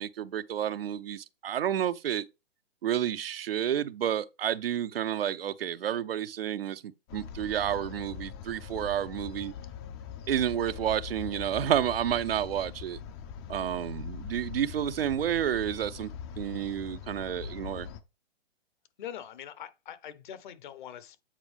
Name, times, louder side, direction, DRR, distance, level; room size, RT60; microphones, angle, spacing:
voice 1, 0.0-2.3 2.8-9.5 10.3-13.0 13.5-16.1 16.4-17.9, right 10 dB, 70° right, 0.6 m, -30 dB
sound 1, 7.1-18.0, left 7 dB, 25° left, 0.5 m, -42 dB
voice 2, 19.0-21.2, left 10 dB, 50° left, 1.1 m, -43 dB
8.8 x 4.4 x 3.4 m
hypercardioid pair, 130°, 31 cm